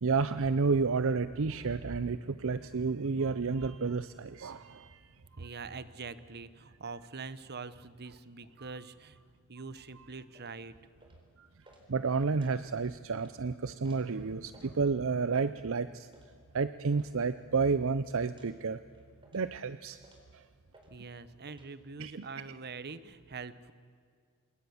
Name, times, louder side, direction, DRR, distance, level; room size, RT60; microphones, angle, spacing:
voice 1, 0.0-5.0 11.4-11.5 11.9-16.1 16.5-18.8 19.3-20.0 20.3-20.4 22.0-22.1, right 4 dB, 65° right, 13 dB, 0.6 m, -31 dB
voice 2, 5.4-9.2 9.5-10.8 20.9-23.7, right 4 dB, 50° right, 15 dB, 1.1 m, -44 dB
sound 1, 10.3-10.6 11.0-11.3 11.6-11.8 12.2-12.8 13.1-13.3 13.8-14.1 14.4-14.7 15.3-15.5 16.1-16.3 16.9-17.1 17.4-17.8 18.3-18.5 18.9-19.5 20.0-20.3 20.7-20.9 21.2-21.7, right 1 dB, 25° right, 4.4 m, -60 dB
26.5 x 21.5 x 7.2 m, 2.1 s
head